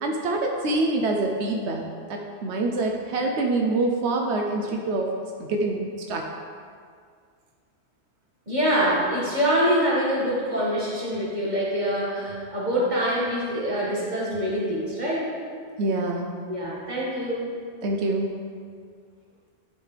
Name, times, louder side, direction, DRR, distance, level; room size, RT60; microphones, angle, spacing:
voice 1, 0.0-1.8 2.1-5.1 5.4-6.3 15.8-16.3 17.8-18.3, right 2 dB, 90° right, 1 dB, 1.0 m, -25 dB
voice 2, 8.5-15.3 16.5-17.5, equal, 45° right, -7 dB, 2.1 m, -25 dB
11.0 x 5.7 x 3.3 m, 2.1 s
omnidirectional pair, 1.1 m